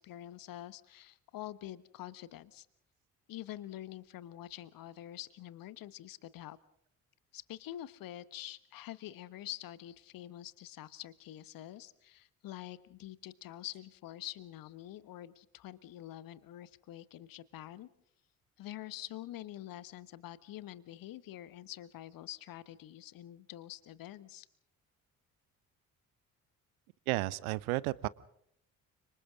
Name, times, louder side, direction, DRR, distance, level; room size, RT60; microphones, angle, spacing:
voice 1, 0.0-2.7 3.3-6.6 7.3-17.9 18.6-24.5, left 13 dB, 50° left, 17 dB, 1.3 m, -46 dB
voice 2, 27.1-28.1, right 19 dB, 65° right, 21 dB, 0.9 m, -32 dB
30.0 x 26.0 x 3.8 m, 0.70 s
figure-of-eight pair, 45°, 44 cm